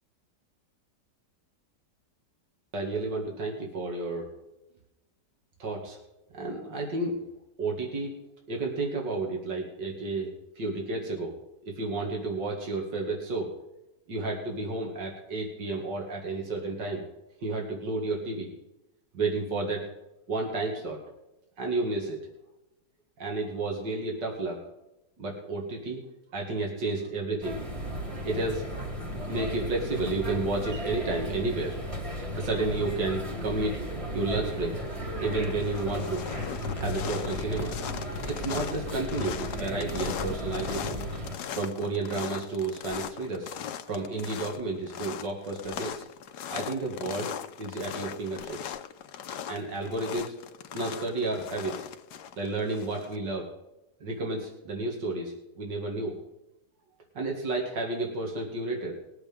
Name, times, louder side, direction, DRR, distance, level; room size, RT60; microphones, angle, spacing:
voice 1, 2.7-4.3 5.6-6.0 6.3-7.2 7.6-8.1 8.5-11.4 11.6-13.5 14.1-17.0 17.4-18.5 19.1-19.8 20.3-21.0 21.6-22.2 23.2-24.6 25.2-26.0 26.3-27.6 28.2-28.6 29.3-31.8 32.3-33.8 34.1-34.8 35.2-36.2 36.8-37.7 38.1-41.0 41.5-43.5 43.9-46.0 46.5-47.3 47.6-48.8 49.5-50.4 50.7-51.9 52.4-53.5 54.0-56.2 57.1-58.9, right 2 dB, 70° right, 0 dB, 2.9 m, -31 dB
sound 1, 27.4-41.4, equal, 20° right, 1.5 m, -35 dB
sound 2, 34.6-35.0 35.3-53.2, left 9 dB, 70° left, 1.2 m, -39 dB
21.0 x 8.0 x 3.6 m, 0.94 s
omnidirectional pair, 1.9 m